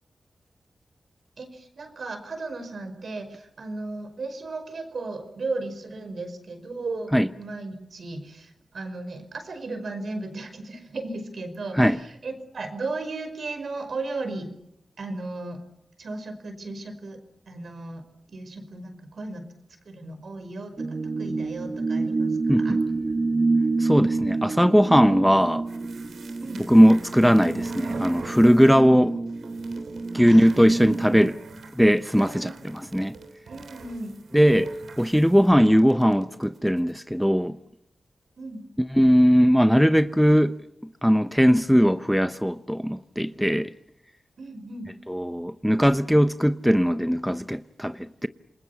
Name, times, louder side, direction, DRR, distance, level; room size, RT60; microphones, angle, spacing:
voice 1, 1.4-14.5 15.0-15.6 16.0-17.2 17.5-18.0 18.3-19.4 19.9-22.8 26.4-26.7 28.7-29.1 30.3-30.6 32.2-32.6 33.5-34.1 38.4-38.6 44.4-44.9, right 3 dB, 70° right, 5.2 m, -35 dB
sound 1, 20.8-31.3, right 3 dB, 50° right, 1.7 m, -28 dB
voice 2, 22.5-22.8 23.8-25.6 26.7-29.1 30.1-31.4 31.7-33.2 34.3-37.6 38.9-40.6 41.0-43.7 45.1-48.3, equal, ahead, 0.8 m, -19 dB
sound 2, 25.7-28.9 29.3-36.9, right 3 dB, 85° right, 3.3 m, -43 dB
28.0 x 20.5 x 7.2 m
cardioid pair, 65°, 0 cm